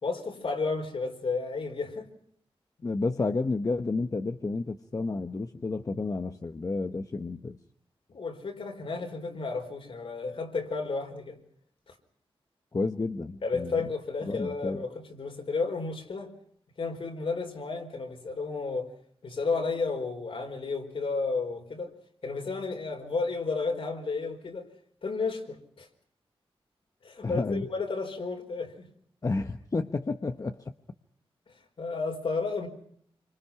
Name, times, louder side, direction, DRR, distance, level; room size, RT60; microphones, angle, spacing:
voice 1, 0.0-2.1 8.1-11.4 11.9-12.0 13.4-16.3 16.8-18.9 19.2-21.9 22.2-24.7 25.0-25.9 27.0-28.9 31.5-32.7, left 4 dB, 65° left, 3 dB, 4.7 m, -32 dB
voice 2, 2.8-7.6 12.7-13.8 14.3-14.8 27.2-27.7 29.2-30.7, left 3 dB, 35° left, 7 dB, 1.0 m, -31 dB
27.5 x 25.5 x 5.8 m, 0.65 s
wide cardioid pair, 130°, 10 cm